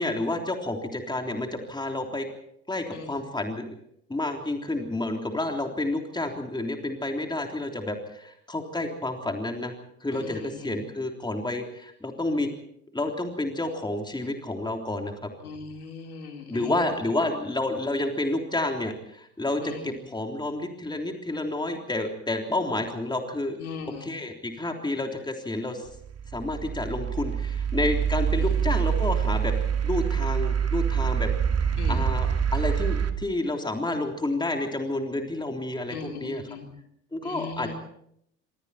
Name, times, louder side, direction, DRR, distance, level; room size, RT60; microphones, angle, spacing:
voice 1, 0.0-2.3 2.7-3.7 4.1-9.7 10.0-12.5 12.9-15.3 16.5-23.6 24.0-25.9 26.3-29.5 29.8-31.3 31.9-36.4 37.1-37.7, left 2 dB, 10° left, 3 dB, 3.5 m, -30 dB
voice 2, 2.9-3.2 10.1-10.8 15.4-16.9 19.6-19.9 23.6-24.1 28.4-28.5 31.8-32.0 35.9-36.7 37.2-37.7, left 5 dB, 80° left, 3 dB, 3.5 m, -38 dB
sound 1, 25.9-33.1, right 8 dB, 35° right, 2.3 m, -26 dB
26.0 x 25.5 x 4.4 m, 0.71 s
figure-of-eight pair, 55°, 43 cm